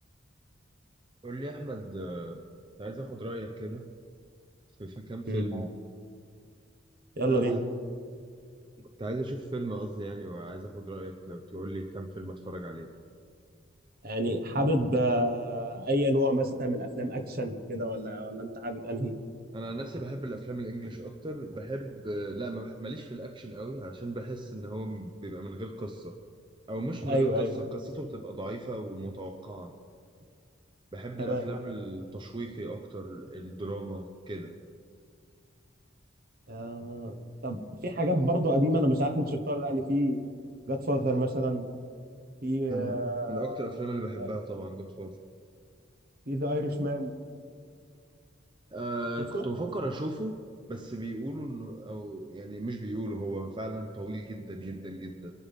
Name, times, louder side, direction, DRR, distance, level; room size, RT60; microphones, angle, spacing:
voice 1, 1.2-2.4 2.8-3.9 4.8-5.7 7.3-7.6 9.0-12.9 19.5-26.2 26.7-29.7 30.9-34.6 42.7-43.0 43.3-45.1 48.7-50.3 50.7-55.3, right 1 dB, 25° right, 3 dB, 0.7 m, -37 dB
voice 2, 7.2-7.6 14.0-19.1 27.1-27.6 31.2-31.5 36.5-40.2 40.7-41.6 42.4-43.7 44.2-44.3 46.3-47.1 49.3-49.4, equal, 50° right, 5 dB, 1.4 m, -28 dB
25.0 x 11.0 x 3.6 m, 2.2 s
head